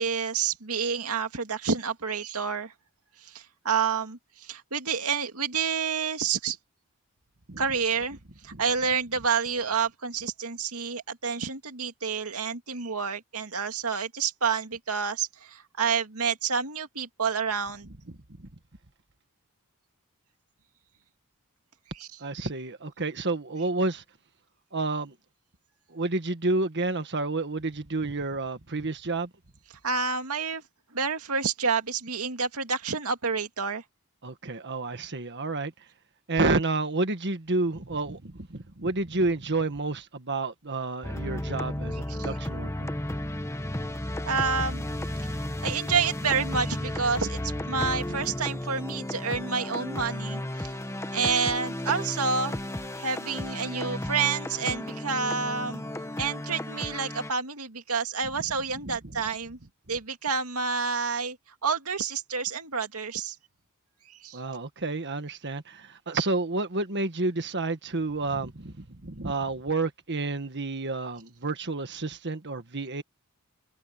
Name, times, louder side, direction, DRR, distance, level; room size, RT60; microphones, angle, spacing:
voice 1, 0.0-2.7 3.2-6.6 7.6-8.2 8.4-17.9 21.9-22.1 29.8-30.6 30.9-33.8 42.1-42.4 44.3-44.8 45.2-50.7 51.1-52.6 52.9-55.8 56.2-59.6 59.9-61.4 61.6-63.4 64.1-64.4, right 5 dB, 80° right, 2.4 m, -29 dB
voice 2, 22.2-24.0 24.7-25.1 25.9-29.3 34.2-35.7 36.3-42.9 58.8-59.1 64.3-73.0, right 3 dB, 50° right, 1.6 m, -30 dB
sound 1, 41.0-57.3, left 1 dB, 15° left, 1.4 m, -33 dB
head